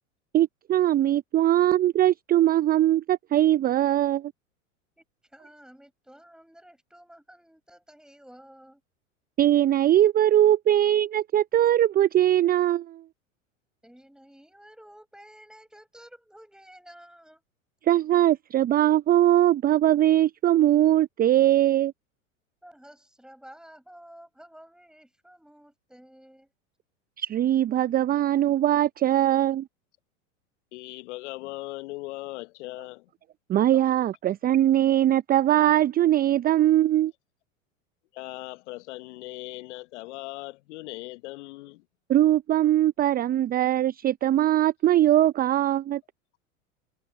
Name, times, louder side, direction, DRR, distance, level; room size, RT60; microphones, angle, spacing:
voice 1, 0.3-4.3 9.4-13.0 17.8-21.9 27.2-29.7 33.5-37.1 42.1-46.0, right 12 dB, 25° right, 0.6 m, -21 dB
voice 2, 5.3-8.8 13.8-17.4 22.6-26.5, equal, ahead, 8.0 m, -51 dB
voice 3, 30.7-33.1 33.7-33.8 38.1-41.8, left 20 dB, 60° left, 1.3 m, -39 dB
hypercardioid pair, 90°, 40 cm